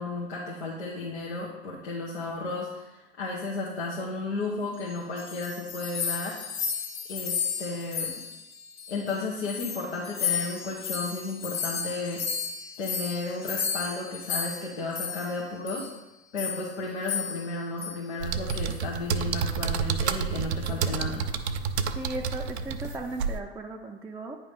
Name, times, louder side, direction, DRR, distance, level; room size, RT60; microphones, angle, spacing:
voice 1, 0.0-6.4 7.1-8.1 8.9-12.2 12.8-15.9 16.3-21.3, left 3 dB, 85° left, -5 dB, 1.1 m, -33 dB
sound 1, 4.9-9.2 9.4-15.4 15.7-15.9 16.4-16.7 17.0-17.5 17.8-18.0 18.5-18.8, left 7 dB, 50° left, 1.3 m, -33 dB
sound 2, 18.2-23.4, right 6 dB, 80° right, 0.5 m, -29 dB
voice 2, 22.0-24.4, right 2 dB, 10° right, -1 dB, 0.4 m, -36 dB
8.8 x 3.0 x 5.2 m, 1.0 s
hypercardioid pair, 85°, 33 cm